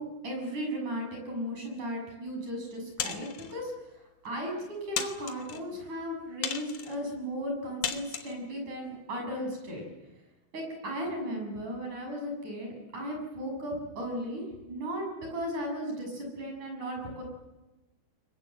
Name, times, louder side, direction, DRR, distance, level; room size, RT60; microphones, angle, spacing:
voice 1, 0.0-3.7 4.2-9.9 10.5-14.4 14.7-17.2, equal, 40° right, 2 dB, 7.8 m, -36 dB
sound 1, 3.0-3.5 4.3-4.4 5.0-5.6 6.4-7.0 7.8-8.4, left 8 dB, 65° left, 1.9 m, -34 dB
23.5 x 22.0 x 7.8 m, 1.1 s
omnidirectional pair, 5.5 m